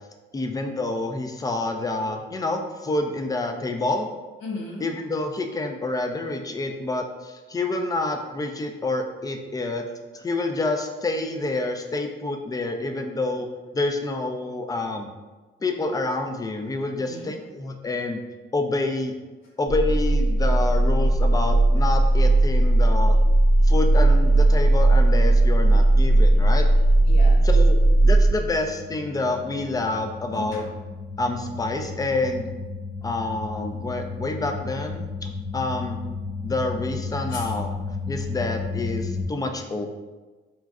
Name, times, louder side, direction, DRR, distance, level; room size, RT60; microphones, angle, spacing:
voice 1, 0.3-4.1 4.8-9.9 10.1-13.5 13.7-15.1 15.6-18.2 18.5-19.1 19.6-23.2 23.6-26.7 27.4-27.8 28.0-30.6 31.2-32.5 33.0-36.0 36.4-37.7 38.1-39.9, left 2 dB, 20° left, 4 dB, 0.4 m, -28 dB
voice 2, 4.4-4.9 17.0-17.3 27.1-27.5 30.3-30.6 37.3-37.5, left 3 dB, 85° left, -2 dB, 0.7 m, -36 dB
sound 1, 19.7-39.2, right 1 dB, 15° right, 0.8 m, -21 dB
4.0 x 2.4 x 2.4 m, 1.2 s
cardioid pair, 90°, 20 cm